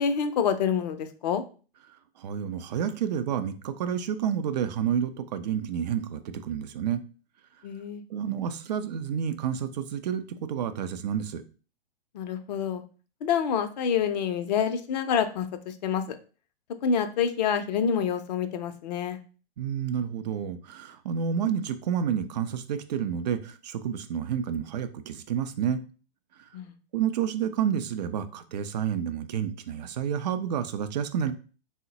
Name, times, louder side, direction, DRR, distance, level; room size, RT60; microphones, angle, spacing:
voice 1, 0.0-1.4 7.6-8.0 12.1-12.8 13.2-16.0 16.8-19.2 26.5-26.7, left 7 dB, 40° left, 9 dB, 0.5 m, -27 dB
voice 2, 1.9-7.0 8.1-11.4 19.6-25.8 26.9-31.3, right 8 dB, 40° right, 11 dB, 0.4 m, -30 dB
3.8 x 2.1 x 3.8 m, 0.37 s
figure-of-eight pair, 110°, 32 cm